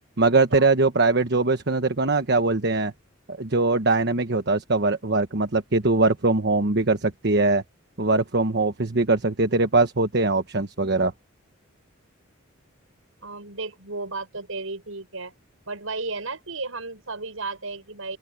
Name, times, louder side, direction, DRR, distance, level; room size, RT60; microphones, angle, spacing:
voice 1, 0.2-2.9 3.3-7.6 8.0-11.1, right 3 dB, 55° right, 1.2 m, -21 dB
voice 2, 13.2-15.3 15.7-18.2, right 3 dB, 80° right, 6.9 m, -34 dB
open air
head